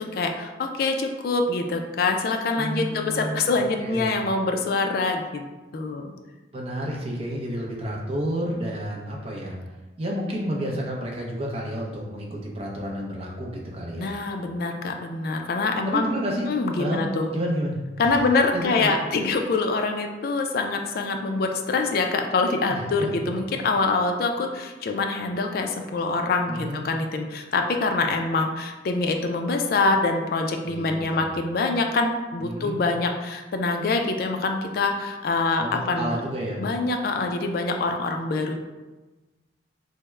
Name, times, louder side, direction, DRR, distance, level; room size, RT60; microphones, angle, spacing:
voice 1, 0.0-5.4 5.7-6.1 14.0-16.1 16.5-17.3 18.0-36.2 36.6-38.6, left 3 dB, 55° left, 4 dB, 0.3 m, -25 dB
voice 2, 2.6-4.1 6.5-9.5 10.0-14.1 15.9-16.5 16.8-17.8 18.0-18.2 18.5-18.9 22.7-23.1 26.5-26.8 30.6-31.3 32.4-32.8 35.6-36.6, equal, 30° right, -2 dB, 0.5 m, -30 dB
3.4 x 2.0 x 3.1 m, 1.2 s
head